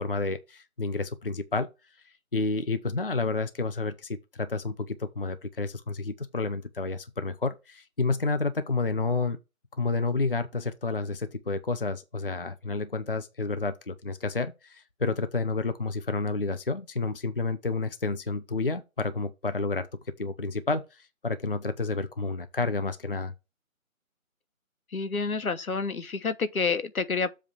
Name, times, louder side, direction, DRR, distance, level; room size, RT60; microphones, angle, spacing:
voice 1, 0.0-1.7 2.3-9.4 9.7-19.9 20.2-23.3, left 3 dB, 40° left, 0.6 m, -30 dB
voice 2, 24.9-27.3, left 4 dB, 85° left, 1.2 m, -29 dB
7.5 x 3.5 x 6.1 m
figure-of-eight pair, 175°, 42 cm